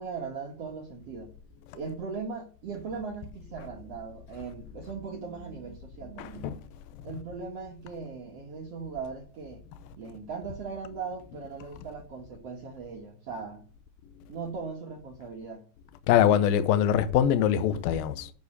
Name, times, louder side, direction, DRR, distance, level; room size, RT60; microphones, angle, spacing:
voice 1, 0.0-1.3 1.7-6.6 7.0-9.6 10.0-13.6 14.3-15.7, right 5 dB, 90° right, 1.3 m, -39 dB
voice 2, 6.2-6.6 16.1-18.3, left 10 dB, 80° left, 2.1 m, -23 dB
7.7 x 7.1 x 8.1 m
omnidirectional pair, 5.4 m